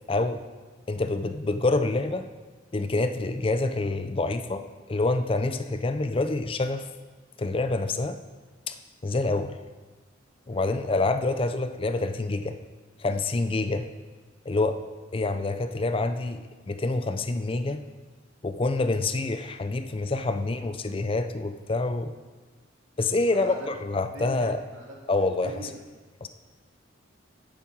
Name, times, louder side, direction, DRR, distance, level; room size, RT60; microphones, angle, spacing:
voice 1, 0.1-0.4 0.9-2.3 2.7-4.6 4.9-6.9 7.4-8.2 8.7-8.8 9.0-9.5 10.5-12.6 13.0-13.8 14.5-14.8 15.1-17.8 18.4-22.1 23.0-24.6 25.1-25.7 26.2-26.3, left 2 dB, 25° left, 9 dB, 0.4 m, -27 dB
voice 2, 10.5-10.9 20.8-20.9 23.3-23.7 24.1-25.0 25.4-25.7, right 2 dB, 80° right, -2 dB, 2.4 m, -42 dB
10.5 x 8.6 x 4.6 m, 1.3 s
head